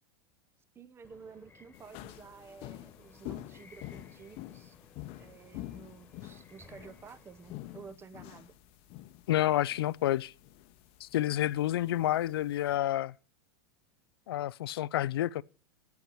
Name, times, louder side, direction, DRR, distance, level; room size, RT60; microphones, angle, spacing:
voice 1, 0.7-4.8 5.2-8.5, right 5 dB, 20° right, 0.8 m, -52 dB
sound 1, 1.0-7.9, left 3 dB, 15° left, 1.7 m, -59 dB
sound 2, 1.7-12.7, left 15 dB, 50° left, 0.8 m, -48 dB
voice 2, 9.3-10.3 11.0-13.1 14.3-15.4, left 13 dB, 80° left, 0.4 m, -29 dB
8.3 x 8.2 x 8.5 m
hypercardioid pair, 110°, 12 cm